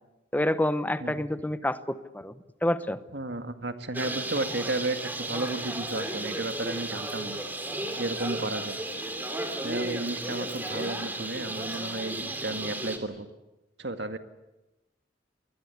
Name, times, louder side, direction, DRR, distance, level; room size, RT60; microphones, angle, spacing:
voice 1, 0.3-2.4 2.6-3.0, left 1 dB, 10° left, 12 dB, 0.9 m, -28 dB
voice 2, 3.1-7.4 8.0-8.8 9.6-13.3 13.8-14.2, right 2 dB, 70° right, 7 dB, 2.0 m, -33 dB
Bird, 3.9-13.0, right 1 dB, 10° right, 3.0 m, -34 dB
27.5 x 21.0 x 8.4 m, 1.0 s
head